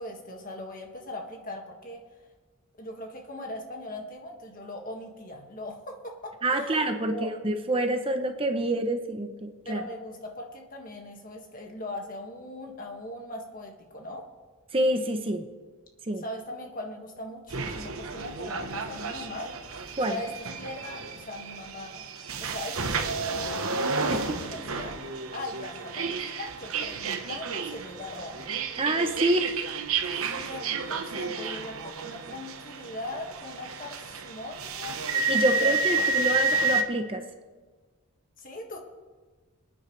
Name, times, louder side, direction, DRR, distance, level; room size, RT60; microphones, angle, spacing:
voice 1, 0.0-2.0 2.8-7.3 9.7-14.3 16.2-19.5 20.1-22.0 22.4-23.5 24.2-25.0 25.3-28.5 30.3-35.0 35.4-36.0 38.4-38.8, left 1 dB, 40° left, 2 dB, 1.9 m, -40 dB
voice 2, 6.4-9.8 14.7-15.5 16.0-16.2 20.0-20.2 24.1-24.4 28.8-29.6 35.3-37.2, right 1 dB, 25° right, 7 dB, 0.7 m, -27 dB
sound 1, 17.5-36.8, right 4 dB, 70° right, 1.1 m, -31 dB
27.0 x 9.6 x 3.3 m, 1.4 s
head